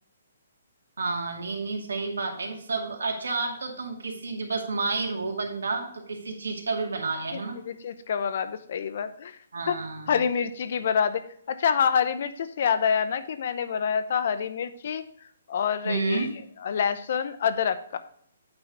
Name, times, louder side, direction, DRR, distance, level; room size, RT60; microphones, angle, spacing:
voice 1, 1.0-7.6 9.5-10.2 15.8-16.3, right 3 dB, 85° right, 1 dB, 2.3 m, -30 dB
voice 2, 7.6-9.3 9.7-9.8 10.1-11.2 11.5-15.0 15.5-16.3 16.6-18.0, left 7 dB, 55° left, 13 dB, 0.7 m, -26 dB
8.7 x 4.7 x 5.4 m, 0.63 s
hypercardioid pair, 150°, 0 cm